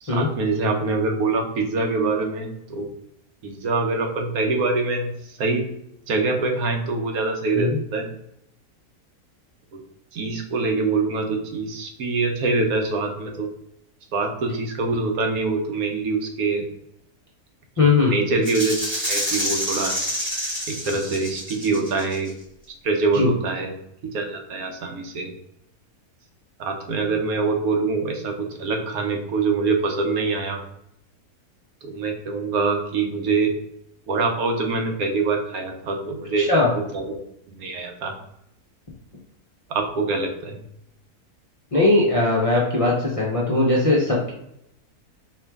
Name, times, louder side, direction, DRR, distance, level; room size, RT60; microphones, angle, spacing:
voice 1, 0.0-2.9 3.4-5.6 6.1-8.1 9.7-9.8 10.1-13.5 14.1-16.7 17.8-18.8 19.1-20.0 20.7-22.3 22.8-23.7 24.1-25.3 26.6-30.6 31.8-33.5 34.1-36.5 36.7-37.1 37.5-38.2 39.7-40.6, right 3 dB, 75° right, 3 dB, 1.2 m, -24 dB
voice 2, 17.8-18.1 23.1-23.3 36.4-36.7 41.7-44.3, left 2 dB, 30° left, -4 dB, 0.6 m, -19 dB
Rattle (instrument), 18.4-22.3, equal, 10° right, 1.2 m, -28 dB
4.5 x 3.1 x 3.5 m, 0.78 s
omnidirectional pair, 1.6 m